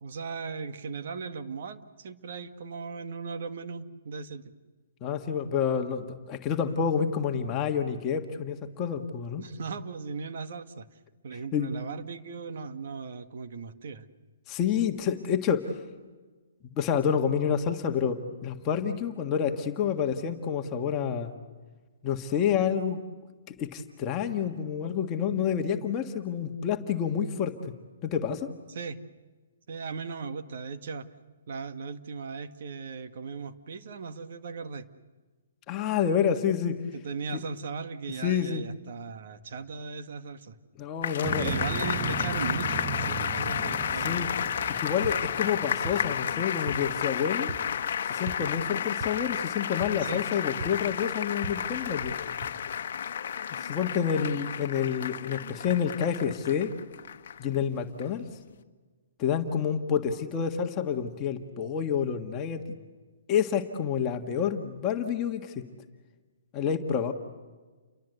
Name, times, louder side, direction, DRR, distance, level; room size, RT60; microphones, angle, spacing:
voice 1, 0.0-4.5 9.4-10.9 11.2-14.1 28.7-29.0 29.7-31.1 31.5-34.9 36.9-40.6 41.2-44.5 50.0-50.2, right 5 dB, 60° right, 9 dB, 1.7 m, -37 dB
voice 2, 5.0-9.4 11.5-11.7 14.5-15.7 16.8-21.3 22.0-23.0 23.5-27.7 28.0-28.5 35.7-36.8 37.3-37.4 38.2-38.6 40.8-41.5 44.0-44.3 44.8-47.5 48.1-52.1 53.6-56.7 57.4-58.3 59.2-62.6 63.3-65.6 66.5-67.1, left 8 dB, 25° left, 3 dB, 1.6 m, -28 dB
sound 1, 41.0-57.5 58.0-58.1, left 8 dB, 60° left, 1.1 m, -32 dB
Motorcycle, 41.2-46.5, right 5 dB, 20° right, 1.1 m, -36 dB
sound 2, 45.0-52.5, right 2 dB, 35° right, 4.4 m, -43 dB
29.5 x 23.0 x 8.0 m, 1.3 s
hypercardioid pair, 155°, 0 cm